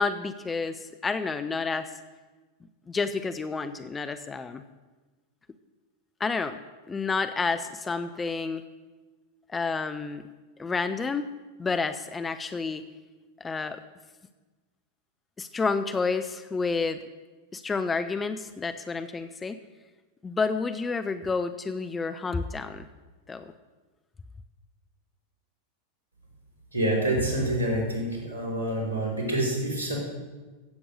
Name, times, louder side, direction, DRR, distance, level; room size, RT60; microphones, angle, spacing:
voice 1, 0.0-1.9 2.9-4.6 6.2-6.6 6.9-8.6 9.5-10.2 10.6-11.3 11.6-12.8 13.4-13.8 15.4-17.0 17.5-19.6 20.2-22.9 23.3-23.4, left 4 dB, 15° left, 10 dB, 0.6 m, -29 dB
voice 2, 26.7-30.0, right 1 dB, 85° left, -2 dB, 4.3 m, -27 dB
15.0 x 7.9 x 6.5 m, 1.3 s
figure-of-eight pair, 90°, 0 cm